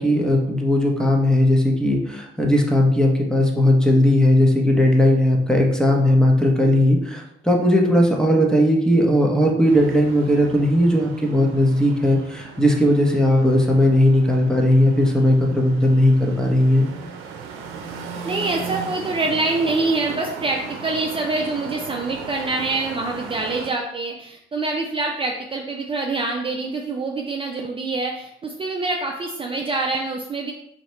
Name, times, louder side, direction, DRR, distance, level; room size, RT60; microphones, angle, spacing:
voice 1, 0.0-16.9, left 1 dB, 5° left, 0 dB, 0.8 m, -17 dB
sound 1, 9.7-23.7, right 5 dB, 90° right, 0.6 m, -36 dB
voice 2, 18.2-30.5, right 3 dB, 25° right, 0 dB, 0.4 m, -25 dB
4.1 x 2.8 x 3.2 m, 0.79 s
cardioid pair, 90°, 20 cm